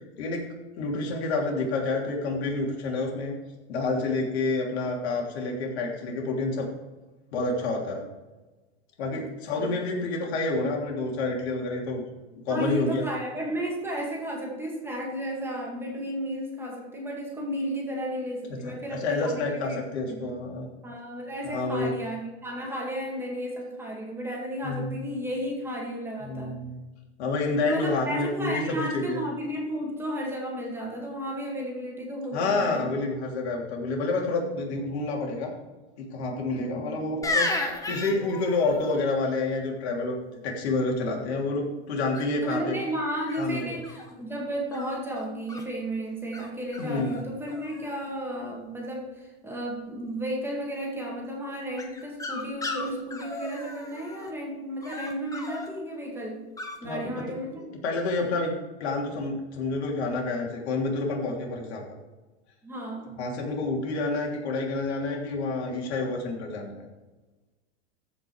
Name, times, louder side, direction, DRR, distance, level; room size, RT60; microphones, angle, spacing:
voice 1, 0.8-3.3 3.7-6.7 7.3-8.1 9.0-12.0 12.5-13.1 18.9-20.7 21.4-21.9 24.6-24.9 26.2-26.8 27.2-29.2 32.3-35.5 36.0-37.5 37.9-40.2 40.4-42.7 43.4-43.7 46.8-47.1 56.8-57.2 57.8-58.5 58.8-61.8 63.2-66.8, left 3 dB, 70° left, -1 dB, 3.3 m, -28 dB
voice 2, 12.5-20.2 20.8-26.6 27.6-32.9 36.5-37.0 42.4-56.5 56.8-57.6 62.6-63.2, right 1 dB, 5° right, -1 dB, 2.1 m, -33 dB
sound 1, 37.2-39.0 42.1-42.5 43.3-44.1 44.7-45.6 46.3-46.5 46.7-47.2 47.5-48.1 51.8-54.3 54.8-55.7 56.6-56.8, left 2 dB, 10° left, 1.3 m, -34 dB
14.5 x 5.5 x 4.8 m, 1.2 s
supercardioid pair, 135°, 34 cm